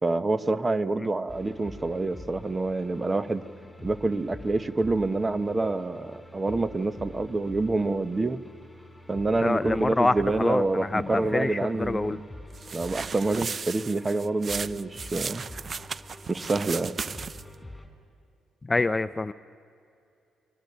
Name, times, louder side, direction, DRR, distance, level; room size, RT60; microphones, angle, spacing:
voice 1, 0.0-3.4 3.8-8.4 9.1-12.3 12.7-15.4 16.3-17.0, right 2 dB, 25° right, 11 dB, 1.1 m, -27 dB
sound 1, 1.3-17.9, left 1 dB, 5° left, 3.9 m, -46 dB
voice 2, 9.4-12.2 18.7-19.3, left 2 dB, 20° left, 13 dB, 0.6 m, -26 dB
sound 2, 12.5-17.6, right 5 dB, 40° right, 0.6 m, -36 dB
29.5 x 22.5 x 6.8 m, 2.5 s
cardioid pair, 90°, 0 cm